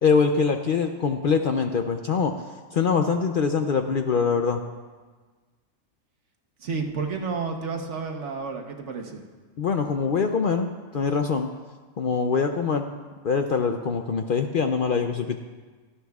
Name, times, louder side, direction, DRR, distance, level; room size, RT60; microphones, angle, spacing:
voice 1, 0.0-2.3 2.7-4.6 9.6-11.5 12.0-12.9 13.2-15.4, left 5 dB, 55° left, 5 dB, 0.6 m, -23 dB
voice 2, 6.6-9.2, right 4 dB, 65° right, 3 dB, 1.3 m, -31 dB
17.0 x 12.5 x 2.4 m, 1.4 s
omnidirectional pair, 1.3 m